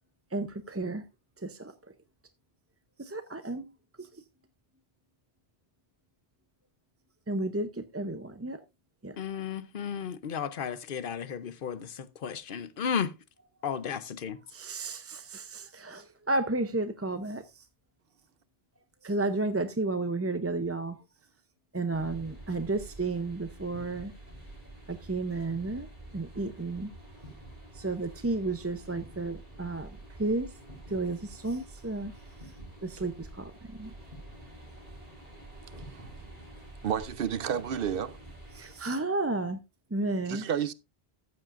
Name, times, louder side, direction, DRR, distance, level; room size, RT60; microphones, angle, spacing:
voice 1, 0.3-1.0 1.4-1.7 3.0-3.7 4.0-4.2 7.3-8.6 9.0-9.2 14.5-17.7 19.0-21.0 21.7-24.1 24.9-25.9 26.1-26.9 27.7-29.9 30.2-30.5 30.9-32.1 32.8-33.9 38.5-39.6 39.9-40.5, right 2 dB, 20° right, 0.5 m, -32 dB
voice 2, 9.2-13.1 13.6-14.4, left 7 dB, 60° left, 0.9 m, -34 dB
sound 1, 21.9-38.8, right 1 dB, 40° right, 4.4 m, -48 dB
voice 3, 35.9-36.3 36.8-38.2 40.3-40.7, right 8 dB, 65° right, 0.8 m, -31 dB
14.5 x 7.6 x 2.5 m
omnidirectional pair, 1.0 m